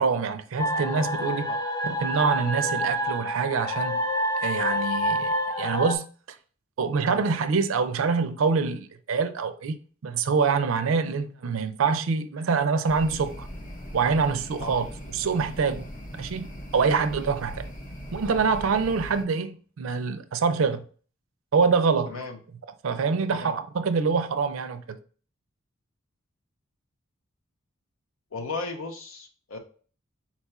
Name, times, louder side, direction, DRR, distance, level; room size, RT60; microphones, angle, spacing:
voice 1, 0.0-1.5 1.8-4.0 4.4-6.1 6.8-9.8 10.0-13.5 13.9-15.9 16.1-17.7 18.1-20.8 21.5-22.1 22.8-25.0, right 5 dB, 70° right, 0.4 m, -25 dB
sound 1, 0.6-6.0, equal, 20° left, 0.4 m, -28 dB
sound 2, 12.9-19.2, equal, 40° left, 0.8 m, -40 dB
voice 2, 22.1-22.4 23.2-23.6 28.3-29.6, left 3 dB, 75° left, 0.7 m, -36 dB
4.2 x 2.3 x 4.1 m
head